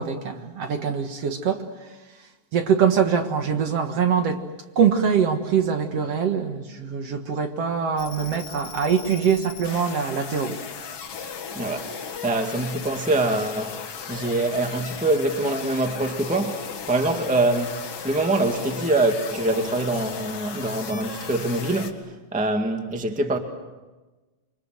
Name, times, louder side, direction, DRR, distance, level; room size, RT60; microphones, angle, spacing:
voice 1, 0.0-1.7 2.5-4.4 4.8-10.6, right 7 dB, 55° right, 2.3 m, -23 dB
sound 1, 8.0-21.9, left 6 dB, 50° left, 2.9 m, -36 dB
voice 2, 11.5-13.8 14.1-23.4, right 2 dB, 5° right, 1.4 m, -24 dB
28.5 x 24.5 x 7.8 m
omnidirectional pair, 3.5 m